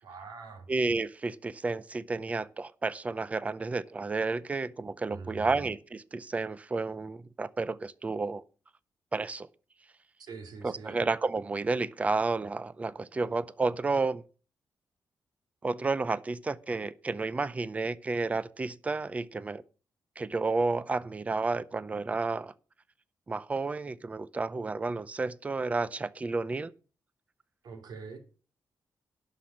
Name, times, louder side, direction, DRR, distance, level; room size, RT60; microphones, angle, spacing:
voice 1, 0.0-0.7 5.1-5.6 10.2-11.0 27.6-28.2, right 4 dB, 70° right, 3.2 m, -44 dB
voice 2, 0.7-8.4 9.1-9.5 10.6-14.2 15.6-19.6 20.2-22.5 23.3-26.7, right 3 dB, 20° right, 0.5 m, -31 dB
11.5 x 6.0 x 8.6 m
wide cardioid pair, 165°, 7 cm